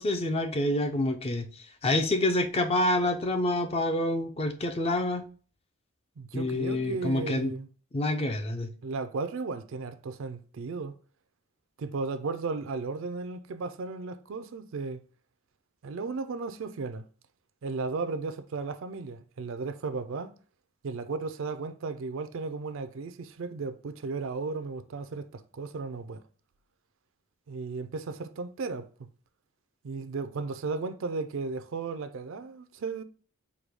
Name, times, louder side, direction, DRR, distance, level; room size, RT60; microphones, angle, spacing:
voice 1, 0.0-5.3 6.3-7.5 7.9-8.7, left 1 dB, 25° left, 0.4 m, -27 dB
voice 2, 6.2-7.7 8.8-10.9 11.8-15.0 15.8-17.1 17.6-20.3 20.8-26.2 27.5-29.1 29.8-33.0, right 4 dB, 65° right, 0.4 m, -35 dB
4.7 x 2.2 x 3.4 m
head